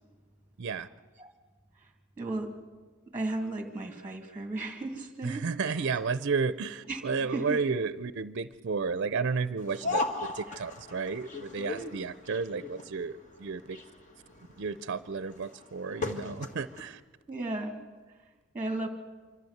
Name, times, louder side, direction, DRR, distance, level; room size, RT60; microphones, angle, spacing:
voice 1, 0.6-0.9 5.2-10.0 10.3-13.8 14.6-17.0, right 5 dB, 55° right, 14 dB, 0.5 m, -32 dB
voice 2, 2.2-2.6 3.1-6.0 6.8-7.7 10.5-10.6 17.3-17.8 18.5-18.9, right 2 dB, 10° right, 3 dB, 1.9 m, -35 dB
sound 1, 9.6-16.9, left 3 dB, 35° left, 1.7 m, -37 dB
25.5 x 13.5 x 7.9 m, 1.3 s
head